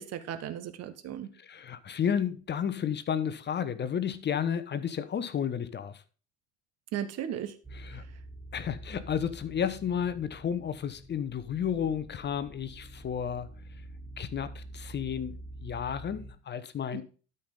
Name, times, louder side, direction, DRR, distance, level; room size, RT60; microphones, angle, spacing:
voice 1, 0.0-1.3 6.9-7.5, right 10 dB, 50° right, 1.4 m, -36 dB
voice 2, 1.4-6.0 7.7-8.0 8.5-13.5 14.2-17.0, left 8 dB, 30° left, 0.9 m, -32 dB
sound 1, 7.6-16.3, right 1 dB, 5° right, 1.4 m, -46 dB
12.5 x 5.5 x 3.8 m
hypercardioid pair, 65°, 33 cm